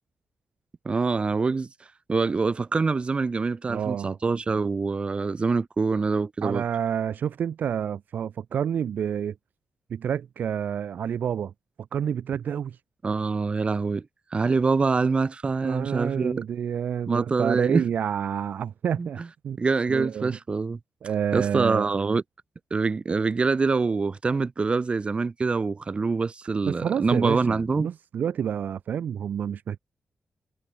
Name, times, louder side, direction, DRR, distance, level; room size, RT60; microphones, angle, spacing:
voice 1, 0.8-1.7 2.1-6.6 13.0-14.0 14.3-16.4 17.1-17.8 19.0-19.3 19.6-20.8 21.3-22.2 22.7-27.9, right 4 dB, 35° right, 1.4 m, -25 dB
voice 2, 3.7-4.2 6.4-9.3 9.9-11.5 11.9-12.8 15.6-19.6 19.9-20.4 21.0-21.9 26.7-29.8, right 8 dB, 75° right, 0.9 m, -29 dB
cardioid pair, 85°, 3 cm